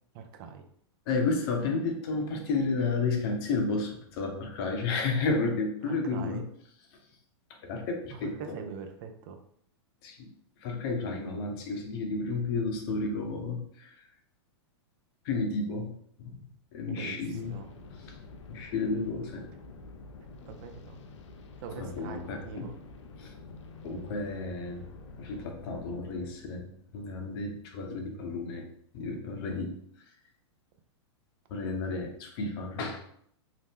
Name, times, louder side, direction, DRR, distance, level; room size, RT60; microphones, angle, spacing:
voice 1, 0.1-0.7 5.9-6.5 8.1-9.4 10.9-11.0 16.9-17.7 20.5-21.0 21.6-22.7, right 5 dB, 50° right, 6 dB, 0.5 m, -42 dB
voice 2, 1.1-6.4 6.9-7.0 7.5-8.5 10.0-10.3 10.6-14.0 15.2-15.9 16.2-16.4 16.7-17.6 17.9-18.1 18.5-19.4 21.8-22.7 23.2-23.3 23.8-24.9 25.2-26.7 26.9-28.6 28.9-30.1 31.5-33.0, left 3 dB, 55° left, 2 dB, 0.8 m, -32 dB
sound 1, 17.3-28.1, left 3 dB, 80° left, 0.5 m, -49 dB
2.9 x 2.1 x 3.4 m, 0.67 s
hypercardioid pair, 120°, 15 cm